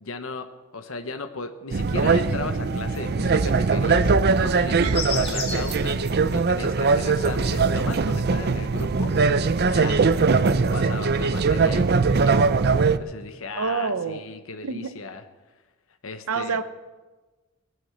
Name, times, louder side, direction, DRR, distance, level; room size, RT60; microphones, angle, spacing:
voice 1, 0.0-9.1 9.7-12.5 13.0-15.2 16.0-16.6, left 3 dB, 70° left, 7 dB, 1.0 m, -36 dB
sound 1, 1.7-13.0, right 4 dB, 50° right, 0.5 m, -21 dB
sound 2, 4.9-8.1 8.4-10.1, left 4 dB, 25° left, 2.2 m, -35 dB
voice 2, 13.6-14.2 14.6-15.0 16.3-16.6, right 5 dB, 90° right, 11 dB, 0.8 m, -27 dB
18.0 x 9.2 x 7.8 m, 1.2 s
head